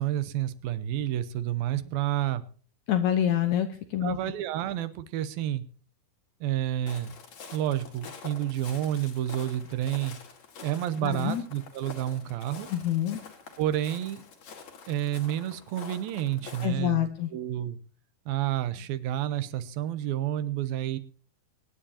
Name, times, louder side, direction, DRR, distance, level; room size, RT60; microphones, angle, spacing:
voice 1, 0.0-2.4 4.0-5.6 6.4-7.1 7.5-10.2 10.6-12.7 13.6-14.2 14.9-17.8 18.3-21.0, right 12 dB, 80° right, 13 dB, 2.6 m, -30 dB
voice 2, 2.9-4.2 11.0-11.4 12.7-13.2 16.6-17.3, left 10 dB, 70° left, 8 dB, 1.8 m, -26 dB
Walk footsteps, 6.9-16.7, left 5 dB, 55° left, 3.1 m, -47 dB
24.0 x 10.0 x 2.8 m, 0.41 s
omnidirectional pair, 4.3 m